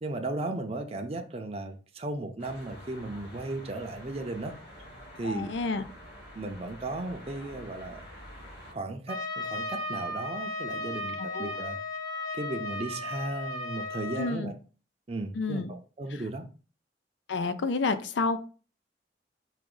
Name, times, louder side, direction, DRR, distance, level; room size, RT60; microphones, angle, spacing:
voice 1, 0.0-4.5 5.2-5.5 6.3-8.0 8.7-11.8 12.3-14.5 15.1-16.4, right 2 dB, 35° right, 0.6 m, -35 dB
sound 1, 2.4-8.7, equal, 60° left, 2.2 m, -47 dB
voice 2, 5.2-5.8 11.2-11.5 14.2-14.5 15.3-15.7 16.1-16.2 17.3-18.4, left 3 dB, 90° left, 0.5 m, -30 dB
Trumpet, 9.1-14.4, left 2 dB, 25° left, 0.7 m, -35 dB
4.9 x 2.5 x 3.8 m
head